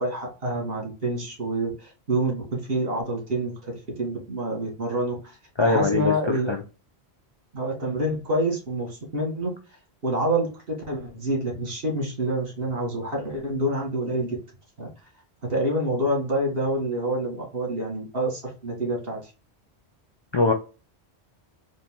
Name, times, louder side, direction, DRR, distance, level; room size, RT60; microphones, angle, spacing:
voice 1, 0.0-5.4 5.6-6.5 7.5-9.5 10.0-14.4 14.8-14.9 15.5-19.3, right 1 dB, 65° right, 2.0 m, -27 dB
voice 2, 5.6-6.6 20.3-20.5, left 3 dB, 40° left, 0.4 m, -22 dB
4.3 x 2.6 x 3.6 m
omnidirectional pair, 1.1 m